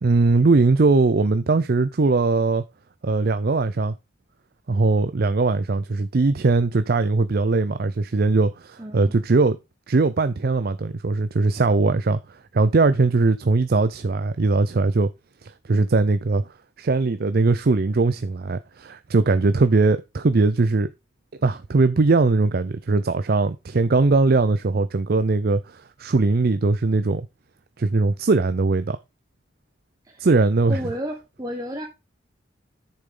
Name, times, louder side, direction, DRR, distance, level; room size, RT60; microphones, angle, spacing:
voice 1, 0.0-2.6 3.0-3.9 4.7-9.6 9.9-15.1 15.4-16.5 16.8-20.9 21.4-27.3 27.8-29.0 30.2-30.8, right 3 dB, 50° right, 0.5 m, -20 dB
voice 2, 8.8-9.1 30.0-30.3 30.7-31.9, equal, 20° right, 1.3 m, -32 dB
8.4 x 6.8 x 3.8 m
head